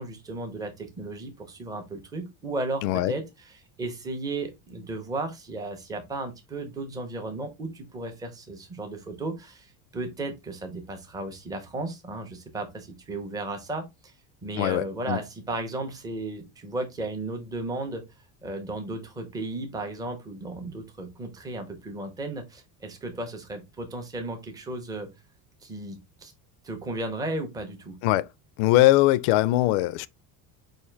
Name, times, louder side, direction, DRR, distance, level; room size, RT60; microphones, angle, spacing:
voice 1, 0.0-3.2 3.8-14.1 14.4-18.0 18.4-25.1 25.6-26.3 26.6-28.0, right 2 dB, 10° right, 0.4 m, -34 dB
voice 2, 2.8-3.1 14.6-15.2 28.0-28.3 28.6-30.1, left 16 dB, 85° left, 0.5 m, -21 dB
4.8 x 2.5 x 3.1 m
cardioid pair, 180°, 43 cm